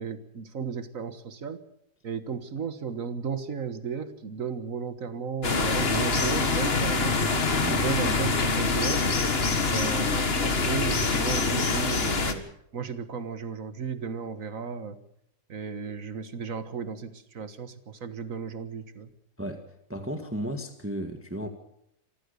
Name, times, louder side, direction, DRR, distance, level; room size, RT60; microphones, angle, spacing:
voice 1, 0.0-1.6 2.0-7.2 7.7-9.1 9.7-12.5 12.7-15.0 15.5-19.1, right 6 dB, 55° right, 12 dB, 1.7 m, -34 dB
sound 1, 5.4-12.3, left 3 dB, 40° left, 1.8 m, -25 dB
voice 2, 19.9-21.5, equal, 10° right, 6 dB, 1.7 m, -34 dB
26.5 x 14.5 x 6.8 m, 0.75 s
omnidirectional pair, 1.7 m